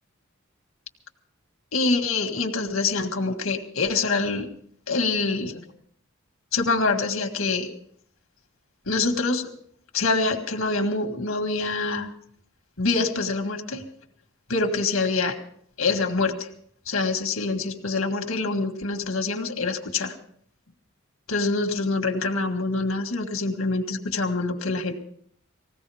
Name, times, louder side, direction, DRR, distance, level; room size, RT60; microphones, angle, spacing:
voice 1, 1.7-4.5 4.9-5.6 6.5-7.7 8.9-9.5 9.9-12.1 12.8-13.8 14.5-15.3 15.8-16.5 16.9-20.1 21.3-24.9, left 3 dB, 80° left, 5 dB, 1.8 m, -25 dB
20.0 x 16.5 x 3.5 m, 0.63 s
head